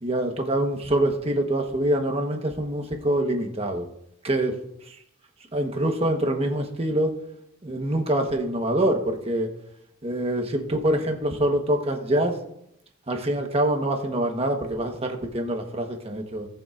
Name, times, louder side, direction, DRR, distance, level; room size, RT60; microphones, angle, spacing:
voice 1, 0.0-3.9 4.2-4.5 5.5-7.1 7.6-9.5 10.0-12.4 13.1-16.5, right 1 dB, 30° right, 4 dB, 1.3 m, -25 dB
18.0 x 7.0 x 2.6 m, 0.77 s
head